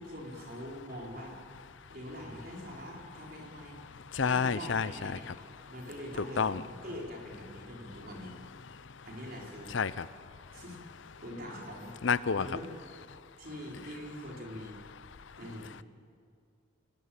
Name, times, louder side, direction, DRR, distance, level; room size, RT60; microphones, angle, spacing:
voice 1, 0.0-1.4 1.9-3.8 4.2-5.3 5.7-8.4 9.0-9.8 10.5-10.8 11.2-11.9 12.3-12.6 13.4-14.8 15.4-15.8, equal, 45° right, -1 dB, 4.8 m, -43 dB
voice 2, 4.1-5.1 6.4-6.6 9.7-10.1 12.0-12.5, left 5 dB, 70° left, 17 dB, 0.6 m, -29 dB
27.0 x 19.5 x 8.8 m, 2.3 s
head